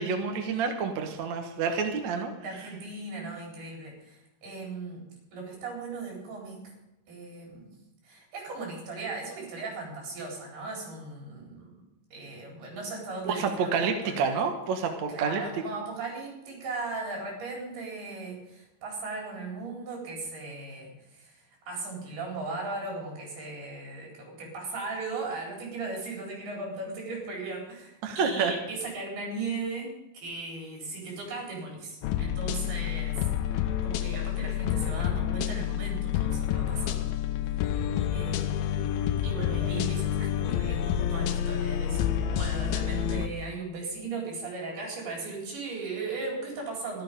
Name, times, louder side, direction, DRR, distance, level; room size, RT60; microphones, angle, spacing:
voice 1, 0.0-2.3 13.3-15.4 28.0-28.5, right 5 dB, 60° right, 4 dB, 2.1 m, -28 dB
voice 2, 2.4-5.0 5.3-6.7 7.1-7.7 8.0-11.7 12.1-14.4 14.8-37.2 37.4-47.0, right 3 dB, 75° right, -1 dB, 6.0 m, -37 dB
sound 1, 32.0-43.3, left 10 dB, 75° left, 2.4 m, -28 dB
15.0 x 12.0 x 5.3 m, 0.91 s
omnidirectional pair, 4.5 m